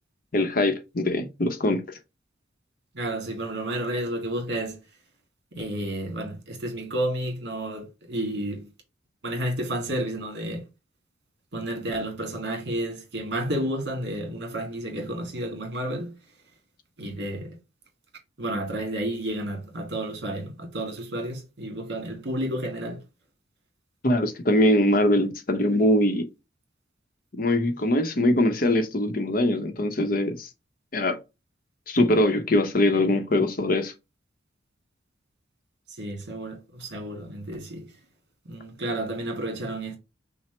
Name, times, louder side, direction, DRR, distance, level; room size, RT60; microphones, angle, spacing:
voice 1, 0.3-1.8 24.0-26.3 27.3-30.5 30.9-31.2 31.9-33.9, left 1 dB, 50° left, 0.7 m, -22 dB
voice 2, 2.9-4.8 5.5-8.7 9.2-10.7 11.5-16.1 17.0-17.6 18.4-23.0 35.9-37.9 38.5-40.0, right 1 dB, 65° right, 1.7 m, -31 dB
5.8 x 2.1 x 4.3 m
head